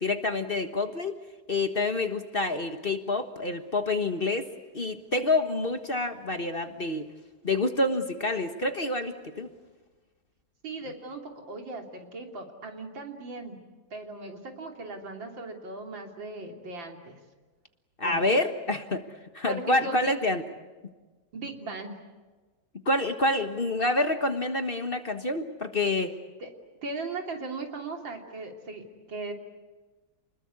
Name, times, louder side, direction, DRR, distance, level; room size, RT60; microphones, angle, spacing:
voice 1, 0.0-1.1 1.5-4.5 4.7-7.1 7.4-9.5 18.0-19.1 19.3-20.4 22.8-26.1, left 2 dB, 35° left, 7 dB, 1.4 m, -27 dB
voice 2, 10.6-13.6 13.9-17.2 18.0-18.2 19.5-20.2 21.3-22.0 26.4-26.5 26.8-29.3, right 3 dB, 90° right, 3 dB, 3.8 m, -38 dB
29.5 x 21.0 x 8.4 m, 1.3 s
omnidirectional pair, 2.0 m